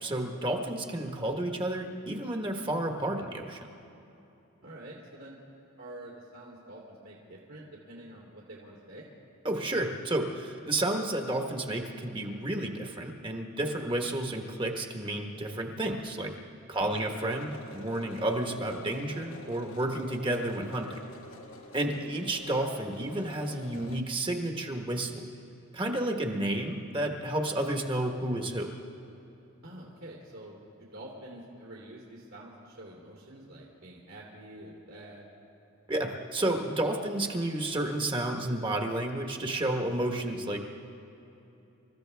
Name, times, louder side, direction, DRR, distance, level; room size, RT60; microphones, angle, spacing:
voice 1, 0.0-3.7 9.4-16.3 16.7-20.9 21.7-25.3 25.7-28.7 35.9-40.6, right 1 dB, 25° right, 3 dB, 1.2 m, -31 dB
voice 2, 4.6-5.4 5.8-9.1 16.9-17.1 21.9-22.1 29.6-35.3, right 1 dB, 75° right, -5 dB, 3.0 m, -47 dB
sound 1, 16.9-24.0, left 1 dB, 70° left, 1.3 m, -48 dB
28.0 x 14.0 x 3.4 m, 3.0 s
head